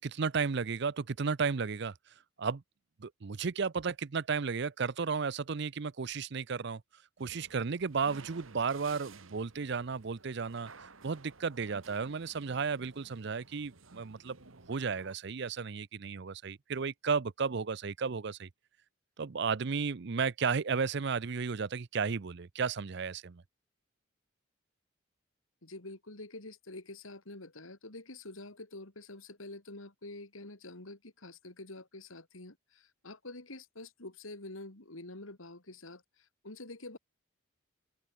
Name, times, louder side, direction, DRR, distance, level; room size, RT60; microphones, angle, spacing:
voice 1, 0.0-1.9 2.4-2.6 3.0-6.8 7.2-14.4 14.7-18.5 19.2-23.4, right 5 dB, 55° right, 0.6 m, -33 dB
sound 1, 7.2-15.1, right 4 dB, 85° right, 2.6 m, -55 dB
voice 2, 25.6-37.0, left 2 dB, 90° left, 3.5 m, -47 dB
open air
head